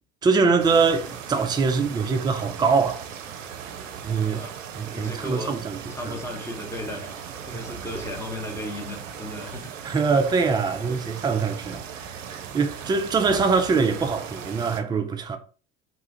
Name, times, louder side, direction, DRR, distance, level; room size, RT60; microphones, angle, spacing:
voice 1, 0.2-3.4 4.0-4.4 4.8-5.8 6.0-6.1 9.8-15.4, right 5 dB, 10° right, 0.4 m, -23 dB
sound 1, 0.6-14.8, right 7 dB, 80° right, 0.5 m, -38 dB
voice 2, 4.3-4.6 4.9-5.5 5.9-7.1 7.4-9.8 10.9-11.0 13.2-13.4, left 1 dB, 5° left, 1.0 m, -36 dB
3.1 x 2.4 x 2.8 m
hypercardioid pair, 70°, 37 cm